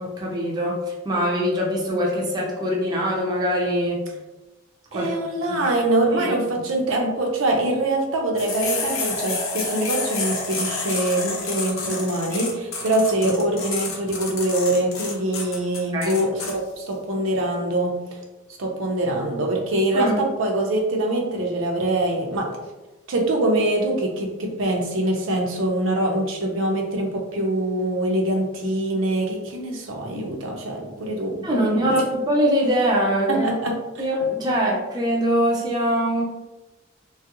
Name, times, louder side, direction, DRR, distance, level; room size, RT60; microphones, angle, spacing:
voice 1, 0.2-0.8 1.0-4.0 4.9-5.1 5.5-5.6 6.1-6.4 13.2-13.3 15.9-16.2 19.9-20.1 31.4-33.4 34.0-36.2, equal, 20° right, -4 dB, 0.5 m, -22 dB
voice 2, 4.9-18.0 18.6-22.5 23.1-32.0 33.3-34.0, right 1 dB, 75° right, 1 dB, 0.6 m, -24 dB
sound 1, 8.4-16.5, left 4 dB, 90° left, 0.7 m, -29 dB
3.0 x 2.4 x 2.9 m, 1.1 s
head